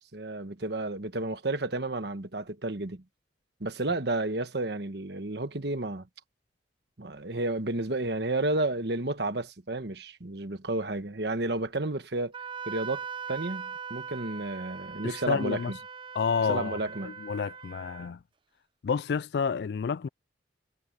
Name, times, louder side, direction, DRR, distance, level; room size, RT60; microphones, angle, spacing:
voice 1, 0.1-3.0 3.6-6.1 7.0-12.3 12.7-15.8 16.5-17.2, right 2 dB, 60° right, 1.3 m, -31 dB
Wind instrument woodwind instrument, 12.3-18.1, right 6 dB, 25° right, 0.6 m, -41 dB
voice 2, 15.0-15.7 16.2-16.8 17.0-18.2 18.8-20.1, left 6 dB, 60° left, 0.3 m, -29 dB
head